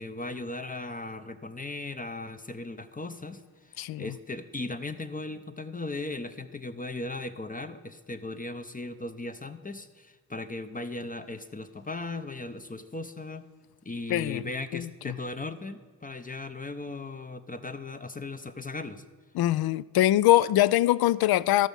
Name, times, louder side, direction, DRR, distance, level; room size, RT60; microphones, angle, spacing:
voice 1, 0.0-13.4 13.8-19.0, left 2 dB, 15° left, 0.7 m, -37 dB
voice 2, 3.8-4.1 14.1-14.4 14.7-15.1 19.3-21.7, left 14 dB, 50° left, 0.5 m, -23 dB
13.5 x 6.1 x 5.3 m
hypercardioid pair, 45°, 49 cm